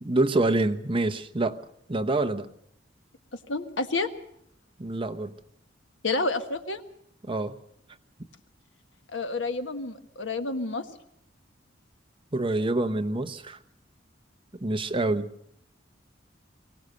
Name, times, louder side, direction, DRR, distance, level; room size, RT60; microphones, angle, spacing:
voice 1, 0.0-1.6 1.9-2.5 4.8-5.4 7.2-7.6 12.3-13.6 14.6-15.3, right 2 dB, 30° right, 8 dB, 1.0 m, -26 dB
voice 2, 3.5-4.1 6.0-6.8 9.1-10.9, left 3 dB, 75° left, 8 dB, 1.6 m, -29 dB
24.0 x 17.5 x 6.5 m, 0.73 s
head